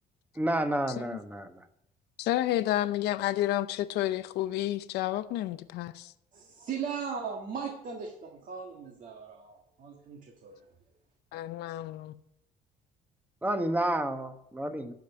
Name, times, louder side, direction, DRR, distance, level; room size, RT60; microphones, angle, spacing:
voice 1, 0.4-1.6 13.4-14.9, right 1 dB, 10° right, 1.1 m, -30 dB
voice 2, 2.2-6.1 11.3-12.1, left 14 dB, 80° left, 0.6 m, -30 dB
voice 3, 6.3-10.6, right 6 dB, 50° right, 1.7 m, -38 dB
12.5 x 5.2 x 8.2 m
cardioid pair, 110°, 17 cm